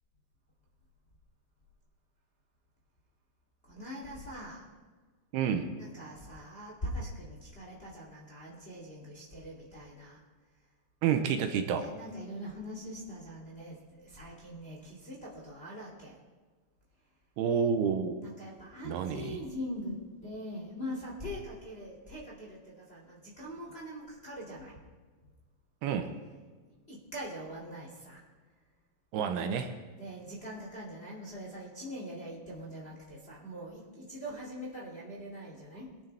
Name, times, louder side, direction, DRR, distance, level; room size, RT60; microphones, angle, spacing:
voice 1, 3.7-4.6 5.8-10.2 11.7-16.1 18.2-20.0 20.2-24.7 26.9-28.2 29.9-35.9, equal, 20° left, -4 dB, 2.2 m, -42 dB
voice 2, 5.3-5.7 11.0-11.9 17.4-18.2 18.8-19.4 25.8-26.1 29.1-29.7, right 7 dB, 80° right, 7 dB, 2.8 m, -29 dB
22.5 x 11.5 x 3.5 m, 1.4 s
omnidirectional pair, 4.7 m